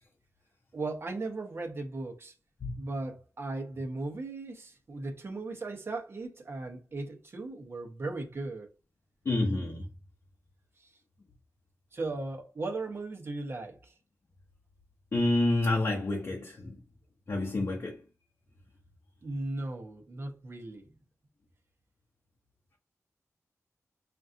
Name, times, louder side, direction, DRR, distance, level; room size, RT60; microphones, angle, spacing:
voice 1, 0.7-2.3 2.8-8.7 11.9-13.9 19.2-20.8, right 2 dB, 45° right, 1.0 m, -37 dB
voice 2, 9.2-9.8 15.1-16.8 17.3-18.0, left 2 dB, 55° left, 0.9 m, -28 dB
5.6 x 2.5 x 2.7 m
wide cardioid pair, 105°, 5 cm